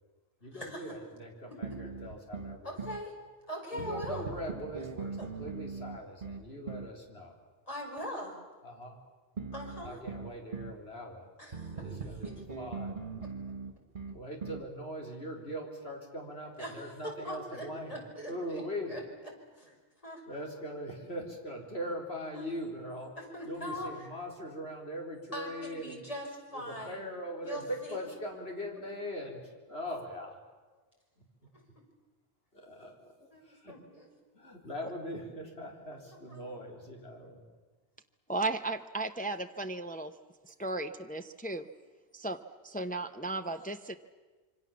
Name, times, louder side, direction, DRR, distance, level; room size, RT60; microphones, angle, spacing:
voice 1, 0.4-2.8 3.7-7.4 8.6-9.0 9.8-11.3 11.8-13.0 14.1-19.0 20.3-23.1 23.4-26.0 26.5-30.4 31.2-31.5 32.5-33.1 33.4-33.7 34.3-37.4, equal, 85° left, 0 dB, 4.4 m, -41 dB
sound 1, 1.6-3.0 3.8-7.0 9.4-10.8 11.5-14.7, right 5 dB, 55° right, 1.6 m, -41 dB
voice 2, 2.6-3.1 3.5-4.3 5.2-5.3 7.7-8.4 9.5-10.0 11.4-11.9 16.6-16.8 17.0-18.6 18.9-19.0 19.5-19.7 20.0-20.2 22.3-22.5 23.2-23.9 25.3-26.3 26.5-27.0 27.4-27.6 33.3-34.1 36.3-36.4, equal, 35° left, -1 dB, 5.9 m, -41 dB
voice 3, 38.3-40.1 40.4-41.7 42.1-42.4 42.6-44.0, right 2 dB, 10° left, 6 dB, 0.8 m, -35 dB
26.5 x 25.0 x 7.3 m, 1.3 s
omnidirectional pair, 1.0 m